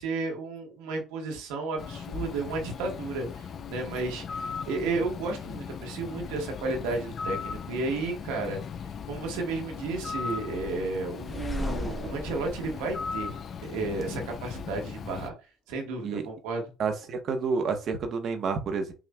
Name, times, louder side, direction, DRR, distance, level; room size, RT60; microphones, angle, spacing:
voice 1, 0.0-8.6 9.1-13.3 13.6-15.3 15.7-16.6, right 3 dB, 90° right, 2 dB, 1.2 m, -33 dB
Bird, 1.8-15.3, left 6 dB, 50° left, 0.4 m, -38 dB
sound 1, 11.1-14.1, left 1 dB, 15° left, 0.8 m, -37 dB
voice 2, 16.8-18.9, right 5 dB, 55° right, 7 dB, 0.9 m, -29 dB
5.8 x 2.5 x 2.2 m, 0.32 s
supercardioid pair, 90°, 0 cm